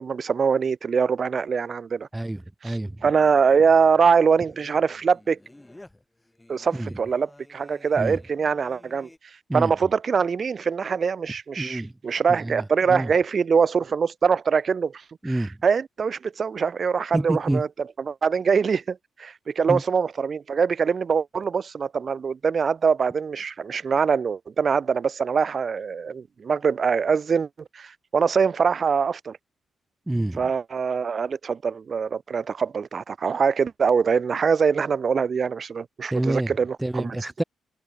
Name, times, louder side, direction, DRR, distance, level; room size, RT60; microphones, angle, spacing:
voice 1, 0.0-2.1 2.6-5.4 6.5-9.1 9.5-17.7 18.0-27.5 27.7-29.4 30.4-37.2, right 6 dB, 45° right, 0.7 m, -23 dB
voice 2, 2.1-3.0 6.7-6.9 8.0-8.2 9.5-9.7 11.6-11.9 12.3-13.1 15.2-15.6 17.1-17.6 19.7-19.8 30.1-30.5 36.1-36.5 36.8-37.4, right 1 dB, 10° right, 0.8 m, -27 dB
Singing, 3.0-9.2, left 1 dB, 10° left, 4.4 m, -52 dB
cardioid pair, 100°, 0 cm